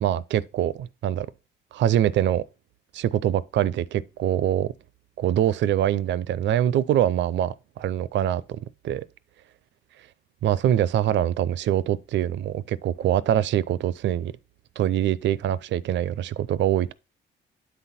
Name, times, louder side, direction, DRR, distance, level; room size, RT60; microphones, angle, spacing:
voice 1, 0.0-1.3 1.7-2.4 2.9-4.7 5.2-8.4 8.8-9.1 10.4-14.3 14.8-16.9, right 11 dB, 65° right, 0.5 m, -24 dB
9.5 x 4.1 x 4.2 m
cardioid pair, 90°, 20 cm